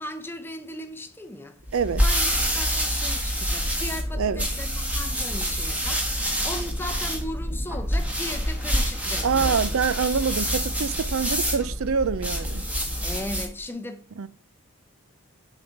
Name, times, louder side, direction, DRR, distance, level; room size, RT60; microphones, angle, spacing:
voice 1, 0.0-1.6 2.0-6.2 6.4-9.7 13.0-14.3, left 1 dB, 10° left, 0.6 m, -37 dB
sound 1, 1.7-13.6, equal, 5° right, 1.2 m, -27 dB
voice 2, 1.7-2.0 4.2-4.5 9.2-12.6 14.2-14.3, right 6 dB, 70° right, 0.5 m, -25 dB
8.0 x 4.0 x 5.6 m
head